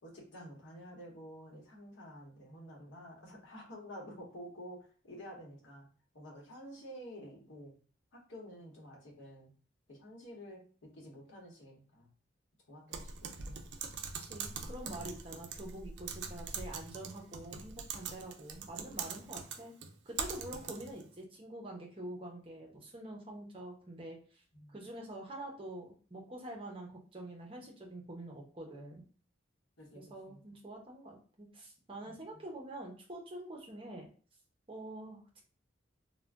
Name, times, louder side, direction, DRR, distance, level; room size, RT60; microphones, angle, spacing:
voice 1, 0.0-5.9 6.1-7.7 8.1-9.5 9.9-12.1 12.7-13.7 15.3-15.4 20.5-20.6 24.5-24.8 29.8-30.4 32.0-32.3, equal, 85° left, -1 dB, 1.0 m, -50 dB
Typing, 12.9-21.0, right 6 dB, 65° right, 0.4 m, -43 dB
voice 2, 14.2-19.7 20.1-24.4 24.7-29.0 29.9-34.1 34.7-35.4, right 1 dB, 30° right, 0 dB, 0.7 m, -46 dB
2.4 x 2.2 x 3.3 m, 0.40 s
head